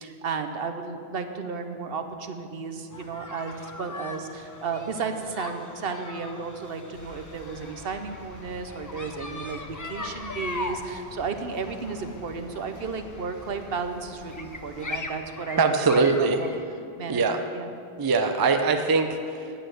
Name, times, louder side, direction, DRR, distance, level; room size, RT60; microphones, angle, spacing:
voice 1, 0.0-15.6 16.2-16.5 17.0-17.7, right 5 dB, 65° right, 6 dB, 0.9 m, -33 dB
sound 1, 2.9-16.6, left 2 dB, 25° left, 0.5 m, -40 dB
sound 2, 6.9-15.0, left 1 dB, 75° left, 1.9 m, -47 dB
voice 2, 15.6-16.4 17.1-17.4 18.0-19.5, right 4 dB, 30° right, 6 dB, 0.5 m, -22 dB
9.0 x 8.7 x 7.7 m, 2.5 s
omnidirectional pair, 1.1 m